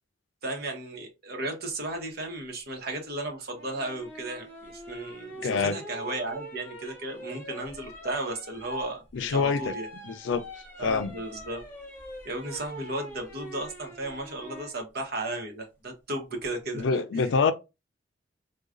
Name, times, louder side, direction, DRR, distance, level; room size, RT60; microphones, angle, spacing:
voice 1, 0.4-9.9 10.8-11.6 12.2-17.3, right 2 dB, 55° right, 1.0 m, -35 dB
Dslide updown slow, 3.6-14.8 16.4-16.8, equal, 15° left, 1.3 m, -43 dB
voice 2, 5.4-5.8 9.1-9.7 10.0-10.4 10.8-11.1 16.7-17.5, left 5 dB, 85° left, 0.4 m, -26 dB
4.6 x 2.3 x 2.5 m
head